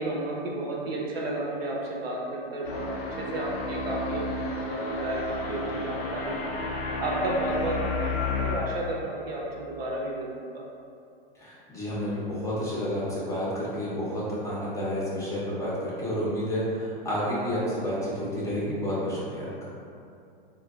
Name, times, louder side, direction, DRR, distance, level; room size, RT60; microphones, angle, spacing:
voice 1, 0.0-2.9 3.2-10.6, right 1 dB, 75° right, -2 dB, 0.7 m, -32 dB
sound 1, 2.6-8.6, left 2 dB, 80° left, 0.5 m, -32 dB
voice 2, 11.4-19.5, equal, 10° left, -8 dB, 0.5 m, -30 dB
3.6 x 2.2 x 2.3 m, 2.5 s
hypercardioid pair, 120°, 30 cm